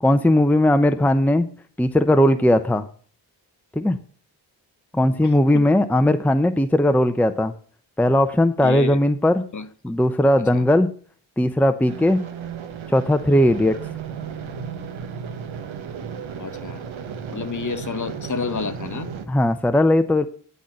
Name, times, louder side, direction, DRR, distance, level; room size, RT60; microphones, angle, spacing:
voice 1, 0.0-1.5 1.8-2.9 3.7-4.0 4.9-7.5 8.0-9.4 9.8-10.9 11.4-12.2 12.9-13.8 19.3-20.3, left 1 dB, 5° left, 0.7 m, -18 dB
voice 2, 5.2-5.7 8.6-9.0 9.5-9.7 10.5-10.6 16.4-16.9 17.3-19.1, left 5 dB, 40° left, 1.1 m, -30 dB
sound 1, 11.9-19.3, right 7 dB, 75° right, 1.3 m, -34 dB
10.0 x 4.1 x 7.6 m
supercardioid pair, 45°, 48 cm